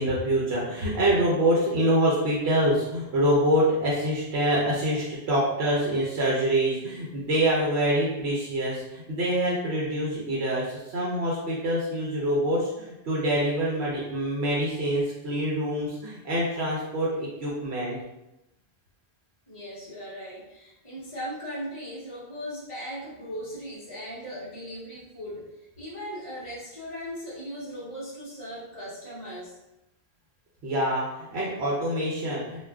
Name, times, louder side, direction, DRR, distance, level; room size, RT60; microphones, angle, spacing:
voice 1, 0.0-18.0 30.6-32.7, right 1 dB, 80° right, -5 dB, 0.9 m, -25 dB
voice 2, 19.5-29.6, equal, 35° left, -7 dB, 0.7 m, -38 dB
2.3 x 2.3 x 3.3 m, 0.93 s
omnidirectional pair, 1.1 m